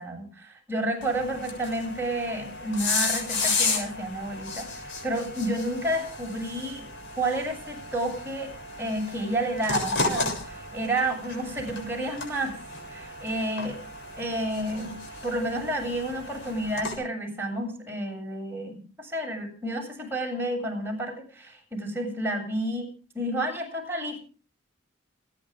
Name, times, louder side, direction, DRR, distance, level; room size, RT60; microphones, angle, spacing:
voice 1, 0.0-6.9 7.2-8.5 8.8-12.6 12.9-13.8 14.2-22.9 23.1-24.2, right 1 dB, 10° right, 0 dB, 7.6 m, -30 dB
sound 1, 1.0-17.0, left 3 dB, 70° left, 7.2 m, -33 dB
29.5 x 10.5 x 3.6 m, 0.39 s
head